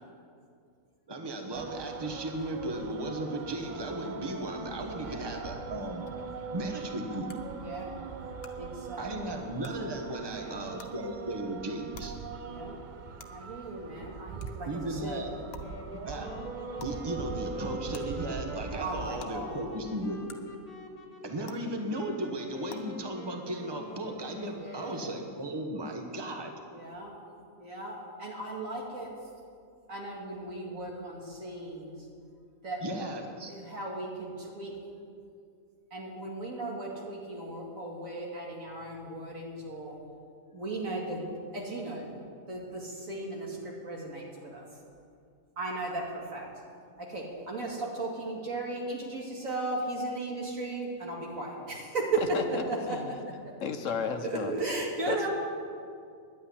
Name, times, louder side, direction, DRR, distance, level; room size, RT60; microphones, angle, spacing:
voice 1, 1.1-6.1 6.5-7.3 9.0-12.1 14.7-15.3 16.1-16.3 16.8-20.2 21.2-26.5 32.8-33.5, right 1 dB, 20° right, 4 dB, 1.1 m, -36 dB
sound 1, 1.5-19.2, right 5 dB, 50° right, 0.6 m, -41 dB
voice 2, 4.9-5.6 7.5-7.9 8.6-9.4 10.2-10.7 12.4-12.8 13.3-15.2 18.8-19.8 24.6-25.1 26.7-27.2 27.6-29.1 29.9-32.1 32.6-32.8 33.5-34.7 35.9-39.9 40.5-42.1 42.5-44.6 45.6-46.5 47.0-52.1 52.5-53.0 54.2-55.3, right 2 dB, 65° right, -2 dB, 2.6 m, -37 dB
sound 2, 6.1-6.2 7.3-7.4 8.4-8.5 9.6-9.7 10.8-10.9 11.9-12.0 13.2-13.3 14.4-14.5 15.5-15.6 16.8-16.9 17.9-18.0 19.2-19.3 20.3-20.4 21.4-21.5 22.7-22.8, left 8 dB, 80° left, 1.4 m, -47 dB
Wind instrument woodwind instrument, 15.6-25.1, left 3 dB, 40° left, 1.7 m, -46 dB
voice 3, 53.6-54.5 55.1-55.2, left 6 dB, 65° left, 7 dB, 1.2 m, -32 dB
10.5 x 8.8 x 9.9 m, 2.3 s
omnidirectional pair, 1.5 m